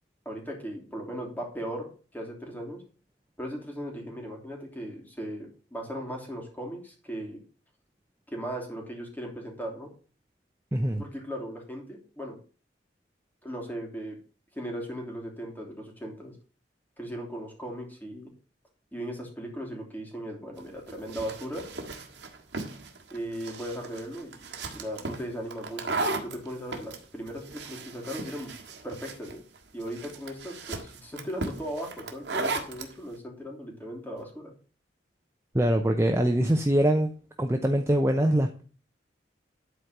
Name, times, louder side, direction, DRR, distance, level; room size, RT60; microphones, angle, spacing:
voice 1, 0.2-2.8 3.4-7.4 8.3-9.9 11.0-12.4 13.4-14.2 14.5-16.3 17.0-18.3 18.9-21.6 23.1-24.5 24.7-28.5 28.8-29.4 29.7-34.5, equal, 10° left, 3.0 m, -37 dB
voice 2, 10.7-11.0 35.5-37.1 37.4-38.6, right 1 dB, 15° right, 0.7 m, -23 dB
sound 1, 20.6-32.9, right 3 dB, 70° right, 1.8 m, -36 dB
11.5 x 4.6 x 6.6 m
head